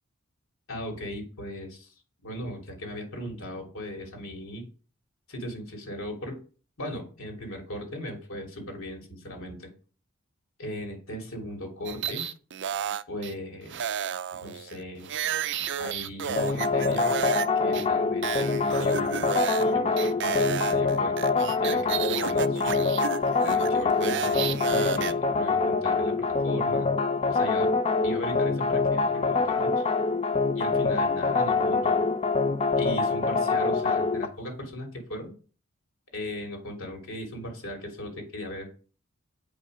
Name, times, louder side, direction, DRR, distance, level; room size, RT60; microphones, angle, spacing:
voice 1, 0.7-1.9 2.2-4.7 5.3-6.4 6.8-9.7 10.6-12.2 13.1-14.0 14.4-15.1 15.8-17.1 17.5-19.3 19.6-21.1 21.6-22.9 23.4-26.9 27.3-27.7 28.0-29.9 30.5-32.1 32.8-35.3 36.1-38.7, left 1 dB, 65° left, 1 dB, 3.2 m, -37 dB
sound 1, 11.8-13.3 13.7-17.5 17.7-17.8 18.2-19.7 20.0-25.1, right 8 dB, 55° right, 0.5 m, -32 dB
sound 2, 16.4-34.3, left 4 dB, 30° left, 0.7 m, -25 dB
8.9 x 5.5 x 4.9 m, 0.39 s
head